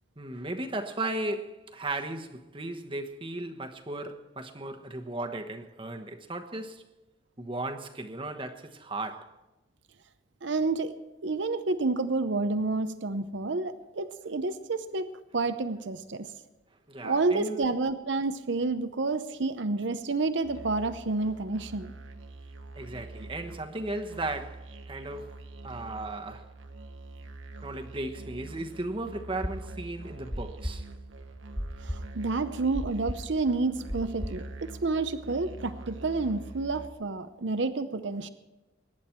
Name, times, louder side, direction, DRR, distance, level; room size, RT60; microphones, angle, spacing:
voice 1, 0.2-6.8 7.4-9.4 16.9-17.7 22.7-25.3 25.6-26.5 27.6-30.9, right 2 dB, 25° right, 1.1 m, -36 dB
voice 2, 10.4-10.9 11.2-15.1 15.3-16.3 17.0-21.9 31.8-38.3, right 3 dB, 70° right, 0.7 m, -29 dB
Musical instrument, 20.4-36.9, right 2 dB, 90° right, 1.2 m, -45 dB
sound 1, 29.4-34.5, equal, 5° left, 0.7 m, -35 dB
22.5 x 10.5 x 4.5 m
head